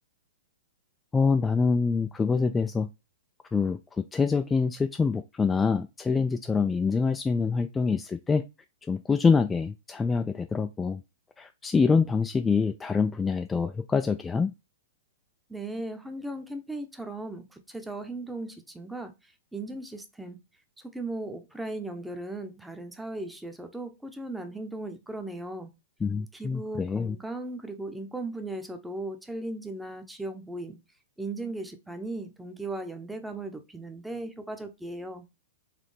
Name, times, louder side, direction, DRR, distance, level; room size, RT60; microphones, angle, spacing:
voice 1, 1.1-2.9 3.5-3.8 4.1-8.4 8.9-11.0 11.4-14.5 26.0-27.2, left 5 dB, 15° left, 0.3 m, -25 dB
voice 2, 15.5-20.4 20.8-25.7 26.3-30.8 31.2-35.3, right 2 dB, 5° right, 0.8 m, -37 dB
4.2 x 3.2 x 3.2 m
hypercardioid pair, 115°, 0 cm